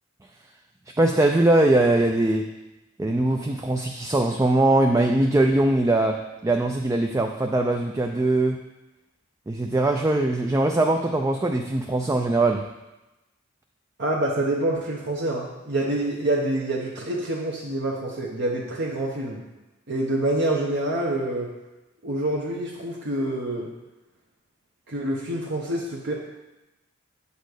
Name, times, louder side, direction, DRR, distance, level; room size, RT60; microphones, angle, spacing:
voice 1, 1.0-2.5 3.0-8.6 9.5-12.6, right 2 dB, 15° right, 3 dB, 0.3 m, -21 dB
voice 2, 14.0-19.4 19.9-21.5 22.0-23.7 24.9-26.1, right 1 dB, 55° right, -3 dB, 0.9 m, -26 dB
8.1 x 4.1 x 6.5 m, 1.0 s
head